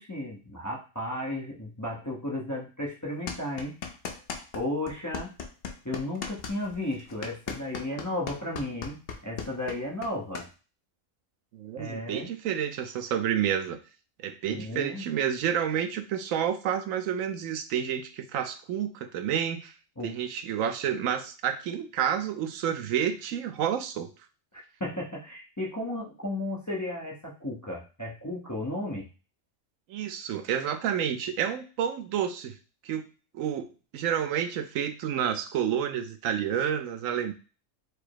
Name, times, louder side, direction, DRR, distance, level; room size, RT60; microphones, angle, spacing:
voice 1, 0.0-3.8 4.5-5.3 5.8-10.4 11.8-12.3 14.5-15.1 20.0-20.2 24.5-29.1, left 1 dB, 15° left, -2 dB, 0.6 m, -34 dB
sound 1, 3.3-4.6 4.9-10.5, left 6 dB, 55° left, 0.8 m, -37 dB
voice 2, 11.5-13.8 14.2-19.7 20.0-24.1 29.9-32.5 32.8-33.0 33.3-37.3, right 9 dB, 80° right, 8 dB, 1.0 m, -29 dB
4.8 x 2.0 x 4.6 m, 0.34 s
omnidirectional pair, 1.4 m